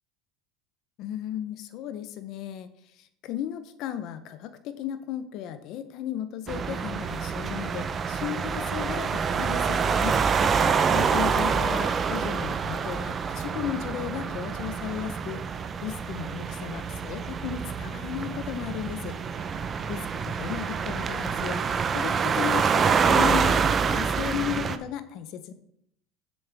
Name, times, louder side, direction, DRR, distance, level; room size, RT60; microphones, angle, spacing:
voice 1, 1.0-2.7 3.0-10.2 10.9-15.4 15.8-19.2 19.9-25.5, left 10 dB, 55° left, 11 dB, 0.6 m, -35 dB
sound 1, 6.5-24.8, right 6 dB, 25° right, 0.5 m, -26 dB
8.7 x 7.0 x 3.4 m, 0.73 s
supercardioid pair, 135°, 0 cm